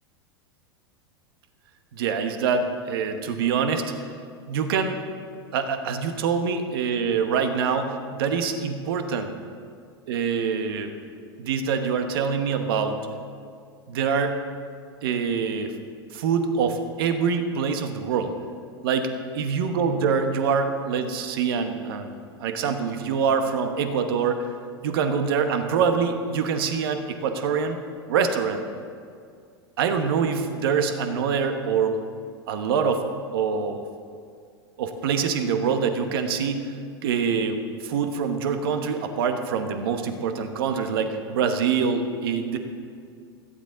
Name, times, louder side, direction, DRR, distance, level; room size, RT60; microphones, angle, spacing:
voice 1, 1.9-3.9 4.5-5.0 5.5-9.3 10.1-10.9 11.4-13.0 13.9-14.4 15.0-15.7 16.1-18.3 18.8-24.5 24.8-27.8 28.1-28.6 29.8-32.0 32.5-33.0 33.3-33.8 34.8-36.7 37.0-42.6, right 6 dB, 65° right, 7 dB, 1.2 m, -25 dB
16.5 x 13.0 x 3.9 m, 2.3 s
hypercardioid pair, 95°, 13 cm